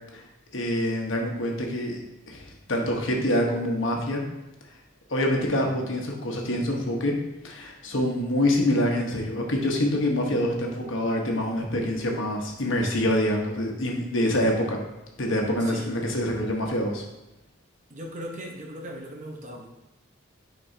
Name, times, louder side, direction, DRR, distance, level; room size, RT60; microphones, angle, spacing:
voice 1, 0.5-2.0 2.3-2.4 2.7-4.2 5.1-7.1 7.4-14.8 15.2-17.0, left 1 dB, 65° left, 0 dB, 1.2 m, -26 dB
voice 2, 15.6-15.9 17.9-19.7, equal, 35° right, 0 dB, 0.9 m, -38 dB
9.2 x 4.2 x 2.8 m, 0.97 s
head